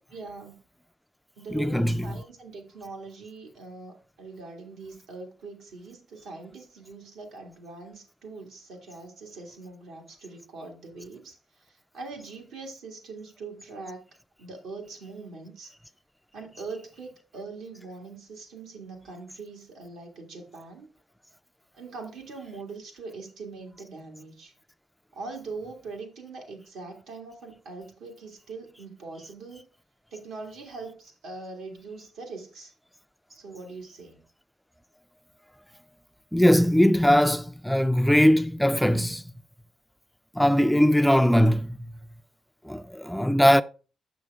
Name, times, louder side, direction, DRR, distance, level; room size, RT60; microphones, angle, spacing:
voice 1, 0.1-0.6 1.4-14.1 14.4-15.7 16.3-20.9 21.7-24.5 25.1-29.7 30.1-32.7 33.3-34.2, right 3 dB, 85° right, 2.0 m, -42 dB
voice 2, 1.5-2.1 36.3-39.2 40.4-41.8 42.7-43.6, equal, ahead, 0.3 m, -20 dB
6.5 x 6.1 x 3.5 m
cardioid pair, 70°, 0 cm